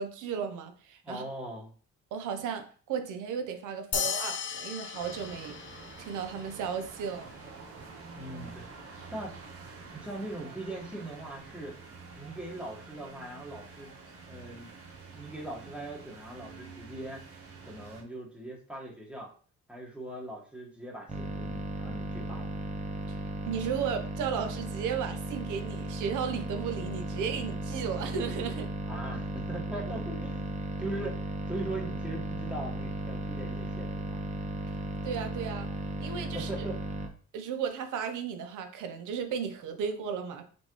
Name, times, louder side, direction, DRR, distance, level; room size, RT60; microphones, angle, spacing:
voice 1, 0.0-1.2 2.1-5.5 6.0-7.3 23.1-23.2 23.4-28.7 35.0-35.7 36.0-36.5 37.3-40.4, right 7 dB, 85° right, 7 dB, 0.8 m, -34 dB
voice 2, 1.0-1.7 3.9-4.0 8.1-8.6 9.1-9.3 9.9-11.7 12.2-13.9 14.3-14.7 15.1-17.2 17.6-19.3 19.7-22.5 28.9-31.2 31.5-34.2 36.3-36.8, right 1 dB, 5° right, -2 dB, 1.5 m, -40 dB
sound 1, 3.9-6.7, left 7 dB, 40° left, 0.5 m, -36 dB
sound 2, 4.9-18.0, right 4 dB, 50° right, 1.1 m, -48 dB
Soft Saw, 21.1-37.1, right 1 dB, 25° right, 0.8 m, -36 dB
3.9 x 3.8 x 3.1 m, 0.43 s
cardioid pair, 90°, 30 cm